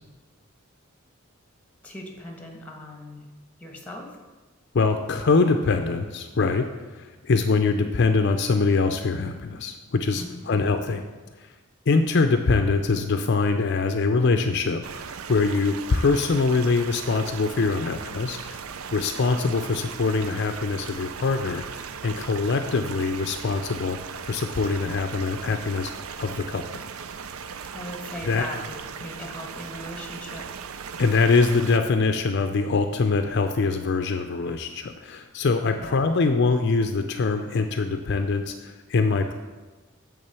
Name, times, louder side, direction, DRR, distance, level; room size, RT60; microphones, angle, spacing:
voice 1, 1.8-3.3 3.6-4.2 10.1-10.6 27.7-30.5 35.8-36.1, left 1 dB, 5° left, 1 dB, 1.2 m, -39 dB
voice 2, 4.7-11.0 11.9-18.6 18.9-24.0 24.3-25.9 26.2-26.8 28.2-28.5 31.0-39.3, left 4 dB, 55° left, 7 dB, 0.5 m, -23 dB
sound 1, 14.8-31.8, right 6 dB, 90° right, 0.5 m, -38 dB
8.7 x 3.7 x 6.8 m, 1.2 s
head